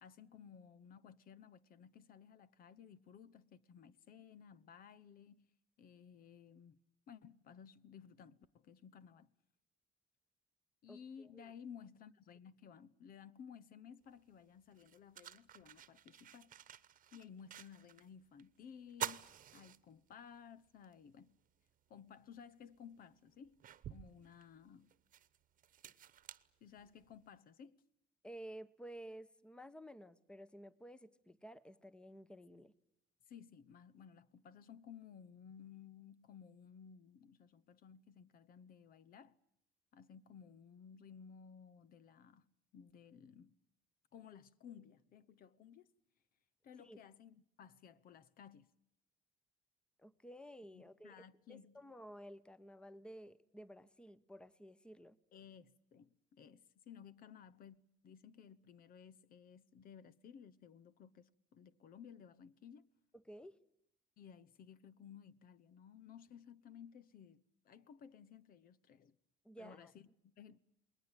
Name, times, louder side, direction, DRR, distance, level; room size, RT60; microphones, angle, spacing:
voice 1, 0.0-5.4 5.8-6.8 7.1-9.3 10.8-16.5 17.1-21.4 21.9-23.6 23.9-24.9 26.6-27.8 33.3-39.4 39.9-42.5 42.7-43.6 44.1-45.9 46.6-48.7 50.7-51.8 55.3-57.8 58.0-62.9 64.2-69.2 69.6-70.6, left 7 dB, 60° left, 1.0 m, -57 dB
voice 2, 10.9-11.4 28.2-32.7 46.8-47.0 50.0-51.1 51.5-55.2 63.1-63.6 69.4-69.9, equal, 5° left, 1.0 m, -53 dB
Lights a candle light with a match, 14.1-14.2 14.7-18.1 18.4-18.5 18.9-20.4 20.8-20.9 22.3-22.4 23.0-27.2, right 10 dB, 55° right, 1.1 m, -49 dB
28.5 x 20.5 x 9.0 m
cardioid pair, 110°, 17 cm